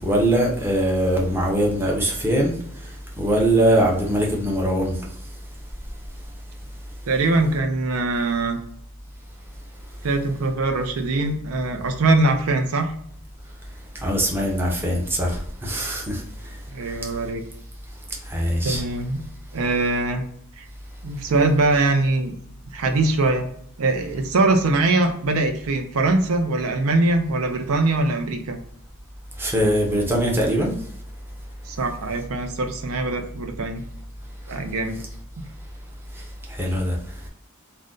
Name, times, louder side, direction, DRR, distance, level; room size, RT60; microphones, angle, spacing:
voice 1, 0.0-2.5 3.2-4.9 14.0-16.2 18.3-18.8 29.4-30.7 36.6-37.0, right 1 dB, 10° right, 0.6 m, -21 dB
voice 2, 7.1-8.6 10.0-12.9 16.7-17.4 18.6-19.2 19.5-20.2 20.6-20.7 21.0-22.4 22.7-23.5 23.8-28.6 31.7-33.8 34.5-35.0 35.4-35.5, right 2 dB, 75° right, 0.5 m, -22 dB
2.5 x 2.1 x 3.7 m
head